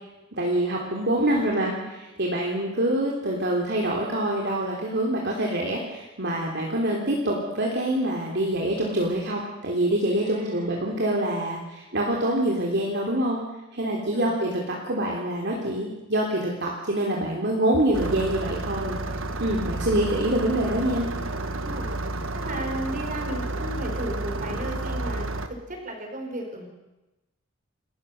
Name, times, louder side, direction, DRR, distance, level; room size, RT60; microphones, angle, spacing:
voice 1, 0.4-1.7 2.2-13.4 13.7-18.9 19.4-21.0, right 1 dB, 55° right, -2 dB, 3.3 m, -25 dB
voice 2, 1.3-2.0 10.1-10.8 14.1-14.6 21.6-21.9 22.3-26.7, right 1 dB, 40° right, 3 dB, 4.8 m, -35 dB
Engine starting, 17.9-25.5, right 2 dB, 85° right, 1.4 m, -31 dB
29.0 x 14.0 x 6.6 m, 1.0 s
head